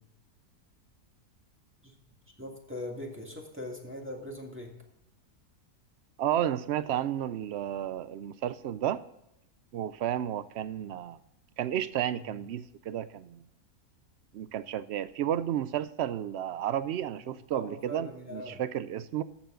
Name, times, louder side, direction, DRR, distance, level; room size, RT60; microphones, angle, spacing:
voice 1, 2.4-4.7 12.0-12.3 17.2-18.6, left 1 dB, 10° right, -1 dB, 1.9 m, -41 dB
voice 2, 6.2-9.0 9.7-11.2 11.6-13.4 14.3-19.2, right 11 dB, 80° right, 15 dB, 0.6 m, -32 dB
13.0 x 7.3 x 3.7 m, 0.84 s
omnidirectional pair, 1.7 m